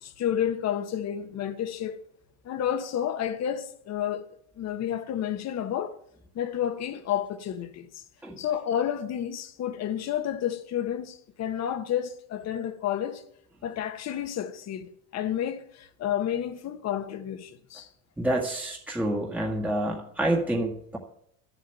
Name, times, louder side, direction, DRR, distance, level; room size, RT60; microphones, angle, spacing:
voice 1, 0.0-2.0 2.4-4.3 4.6-6.0 6.3-8.0 8.4-13.2 13.6-17.9, left 10 dB, 35° left, 1.4 m, -30 dB
voice 2, 18.2-21.0, right 1 dB, 5° right, 1.7 m, -28 dB
11.5 x 7.4 x 9.3 m
supercardioid pair, 135°, 45 cm